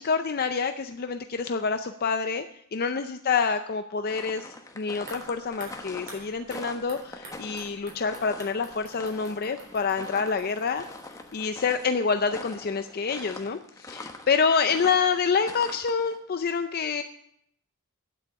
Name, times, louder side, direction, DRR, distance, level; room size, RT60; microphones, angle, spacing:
voice 1, 0.0-2.4 2.7-4.5 4.8-10.8 11.3-17.0, left 5 dB, 45° left, 8 dB, 0.5 m, -27 dB
sound 1, 4.1-16.2, left 2 dB, 15° left, 1.1 m, -44 dB
sound 2, 5.0-12.0 12.3-12.4, right 2 dB, 45° right, 3.8 m, -49 dB
9.2 x 8.2 x 8.0 m, 0.74 s
head